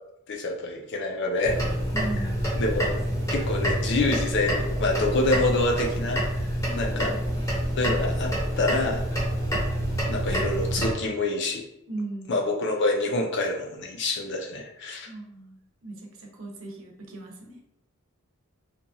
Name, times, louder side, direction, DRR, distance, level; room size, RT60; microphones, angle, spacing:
voice 1, 0.3-1.6 2.6-2.9 3.3-6.2 6.8-7.1 7.8-9.0 10.1-11.6 12.3-15.1, left 2 dB, 55° left, 2 dB, 0.5 m, -26 dB
sound 1, 1.4-10.9, equal, 15° left, 0.7 m, -27 dB
voice 2, 1.9-2.4 6.6-7.3 11.9-12.5 15.0-17.6, right 2 dB, 65° right, 1 dB, 0.6 m, -38 dB
2.8 x 2.2 x 2.6 m, 0.82 s
head